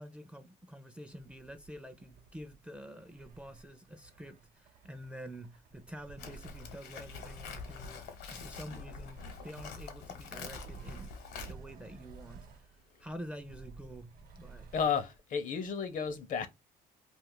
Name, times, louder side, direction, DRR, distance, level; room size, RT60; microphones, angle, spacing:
voice 1, 0.0-11.1 11.5-12.7 13.0-14.7, equal, 5° right, 0.4 m, -48 dB
sound 1, 1.1-9.9 10.4-15.2, right 5 dB, 60° right, 0.9 m, -54 dB
Livestock farm animals working animals, 6.2-11.5, left 5 dB, 75° left, 1.0 m, -45 dB
voice 2, 14.7-16.5, left 6 dB, 50° left, 0.6 m, -32 dB
2.5 x 2.4 x 3.7 m
cardioid pair, 110°, 17 cm